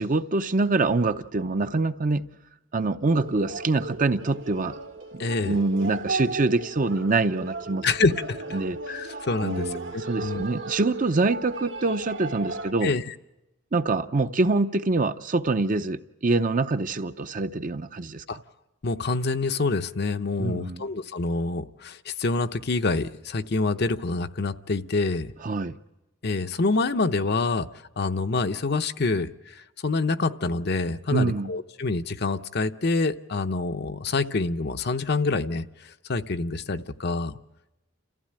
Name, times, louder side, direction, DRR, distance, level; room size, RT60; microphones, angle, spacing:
voice 1, 0.0-2.3 2.7-4.8 5.4-7.9 8.5-8.8 9.4-12.9 13.7-18.4 20.4-20.9 25.4-25.8 31.1-31.5, right 3 dB, 45° right, 0.7 m, -25 dB
sound 1, 3.1-12.7, right 3 dB, 80° right, 2.3 m, -36 dB
voice 2, 5.2-5.6 7.8-8.4 8.9-10.4 12.8-13.1 18.3-18.4 18.8-25.3 26.2-27.7 28.0-35.6 36.1-37.4, left 3 dB, 55° left, 0.8 m, -26 dB
29.5 x 15.0 x 8.8 m
head